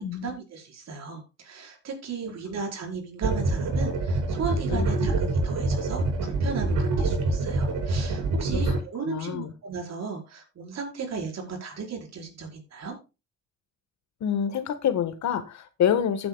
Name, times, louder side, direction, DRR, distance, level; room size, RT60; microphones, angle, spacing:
voice 1, 0.2-12.9, right 5 dB, 60° right, 1 dB, 5.0 m, -36 dB
sound 1, 3.2-8.8, right 2 dB, 80° right, 5.7 m, -25 dB
voice 2, 9.0-9.5 14.2-16.3, left 8 dB, 65° left, 11 dB, 1.5 m, -27 dB
15.0 x 8.7 x 2.3 m, 0.29 s
cardioid pair, 90°, 30 cm